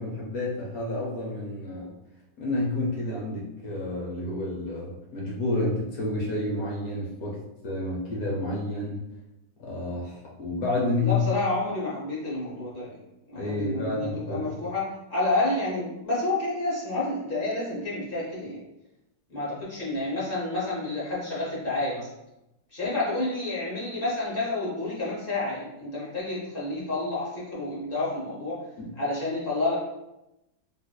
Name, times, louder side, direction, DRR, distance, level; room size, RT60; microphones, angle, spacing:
voice 1, 0.0-1.9 2.4-7.4 7.6-9.0 9.6-11.2 13.4-14.6 28.8-28.9, left 2 dB, 60° left, -3 dB, 1.0 m, -30 dB
voice 2, 11.0-13.0 13.3-14.8 15.1-18.6 19.3-22.1 22.7-28.6 29.0-29.8, left 2 dB, 45° left, -6 dB, 0.8 m, -29 dB
3.9 x 2.5 x 2.2 m, 0.92 s
omnidirectional pair, 2.0 m